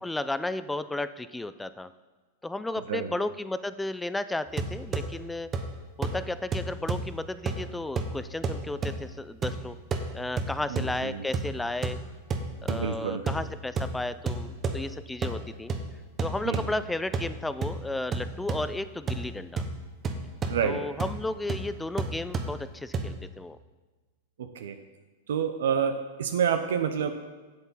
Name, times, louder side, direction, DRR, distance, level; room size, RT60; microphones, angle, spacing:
voice 1, 0.0-1.9 2.4-5.5 6.0-9.8 10.1-12.0 12.6-15.7 16.2-19.6 20.6-23.6, left 2 dB, 5° left, 14 dB, 0.4 m, -33 dB
sound 1, 4.5-23.2, right 3 dB, 25° right, 1.0 m, -34 dB
voice 2, 10.7-11.2 12.7-13.2 16.4-16.6 20.5-20.8 24.4-24.8 25.3-27.1, right 7 dB, 80° right, 8 dB, 0.7 m, -28 dB
7.9 x 7.3 x 5.6 m, 1.3 s
hypercardioid pair, 130°, 0 cm